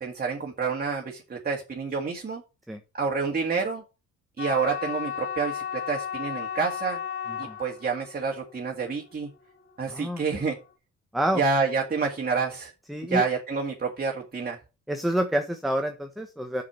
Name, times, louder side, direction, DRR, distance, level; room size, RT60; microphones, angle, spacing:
voice 1, 0.0-2.4 2.9-3.8 4.4-7.0 7.4-9.3 9.8-10.6 11.4-12.7 13.1-14.6, right 5 dB, 30° right, 1 dB, 2.0 m, -28 dB
sound 1, 4.4-10.5, left 9 dB, 45° left, 2.1 m, -35 dB
voice 2, 9.9-10.2 11.1-11.4 12.9-13.2 14.9-16.6, right 1 dB, ahead, 5 dB, 1.3 m, -28 dB
6.7 x 6.2 x 7.0 m, 0.30 s
cardioid pair, 90°, 30 cm